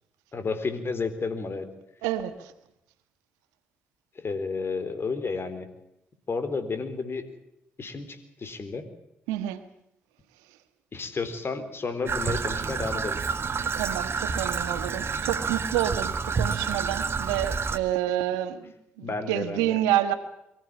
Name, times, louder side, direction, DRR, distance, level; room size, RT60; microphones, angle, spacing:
voice 1, 0.3-1.7 4.2-5.7 6.3-7.2 7.8-8.8 10.9-13.2 19.0-19.8, left 4 dB, 45° left, 11 dB, 4.0 m, -31 dB
voice 2, 2.0-2.5 9.3-9.6 13.6-20.1, right 12 dB, 85° right, 11 dB, 1.3 m, -28 dB
Traffic noise roadway noise / Trickle dribble, 12.1-17.8, right 5 dB, 45° right, 1.7 m, -29 dB
24.0 x 15.0 x 8.6 m, 0.83 s
hypercardioid pair, 45°, 6 cm